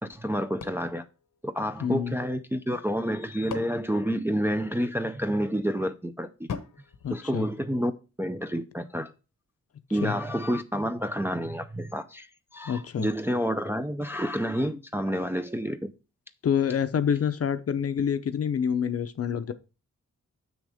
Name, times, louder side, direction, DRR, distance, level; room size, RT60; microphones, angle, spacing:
voice 1, 0.0-1.0 1.4-6.5 7.1-7.9 8.2-9.1 9.9-15.9, equal, 10° right, 0.4 m, -29 dB
sound 1, 0.6-2.1 3.0-5.0 6.5-8.1, left 6 dB, 85° left, 1.0 m, -42 dB
voice 2, 1.8-2.2 7.0-7.5 10.0-10.2 12.7-13.1 16.4-19.5, left 8 dB, 50° left, 0.6 m, -27 dB
7.2 x 6.3 x 3.4 m
wide cardioid pair, 165°, 30 cm